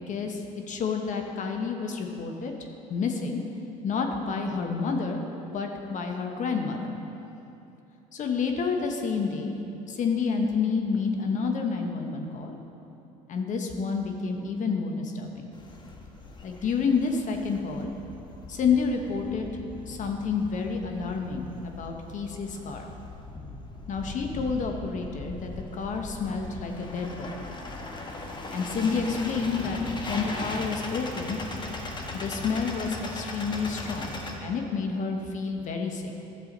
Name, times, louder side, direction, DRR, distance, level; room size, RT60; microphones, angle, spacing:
voice 1, 0.0-2.5 2.9-3.4 3.8-5.2 5.5-6.8 8.1-9.6 9.9-12.6 13.3-15.5 16.4-17.9 18.5-19.5 19.9-22.9 23.9-27.3 28.5-29.8 30.1-31.4 32.1-36.1, left 5 dB, 50° left, 3 dB, 1.1 m, -29 dB
sound 1, 15.5-34.3, left 2 dB, 30° left, 1.2 m, -39 dB
11.5 x 7.1 x 4.0 m, 2.9 s
supercardioid pair, 75°, 16 cm